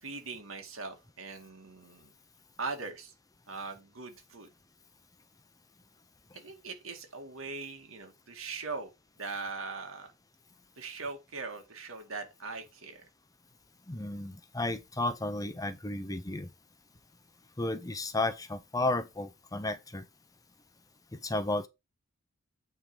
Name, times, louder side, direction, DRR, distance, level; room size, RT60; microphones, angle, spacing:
voice 1, 0.0-2.1 2.6-3.1 3.5-4.5 6.3-8.9 9.2-10.1 10.8-13.1, right 4 dB, 80° right, 2.2 m, -40 dB
voice 2, 13.9-16.5 17.6-20.0 21.1-21.7, left 2 dB, 15° left, 0.7 m, -33 dB
8.8 x 3.7 x 5.0 m
head